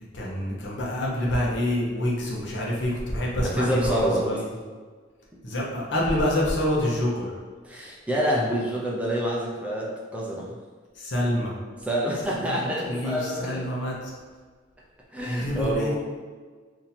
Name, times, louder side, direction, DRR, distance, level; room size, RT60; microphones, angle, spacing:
voice 1, 0.1-4.5 5.4-7.4 11.0-11.5 12.2-14.1 15.2-15.9, left 1 dB, 65° left, -4 dB, 0.9 m, -27 dB
voice 2, 3.4-4.3 7.6-10.6 11.8-13.6 15.1-15.9, equal, 5° right, -4 dB, 0.5 m, -27 dB
2.8 x 2.7 x 4.1 m, 1.5 s
head